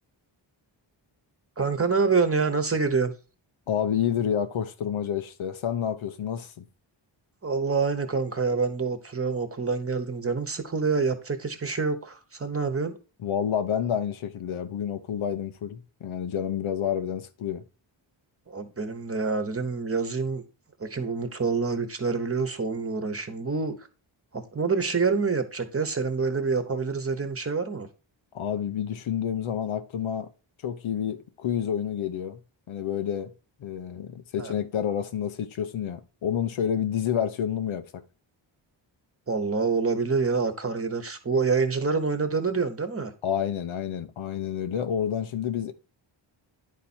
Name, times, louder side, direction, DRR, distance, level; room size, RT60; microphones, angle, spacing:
voice 1, 1.6-3.1 7.4-13.0 18.5-20.4 20.8-23.8 24.3-27.9 34.4-34.5 39.3-43.1, right 4 dB, 30° right, 1.1 m, -27 dB
voice 2, 3.7-6.6 13.2-17.6 28.3-30.3 30.6-32.4 32.7-33.3 33.6-38.0 43.2-45.7, left 9 dB, 85° left, 0.9 m, -29 dB
10.5 x 4.2 x 4.3 m
wide cardioid pair, 110°, 47 cm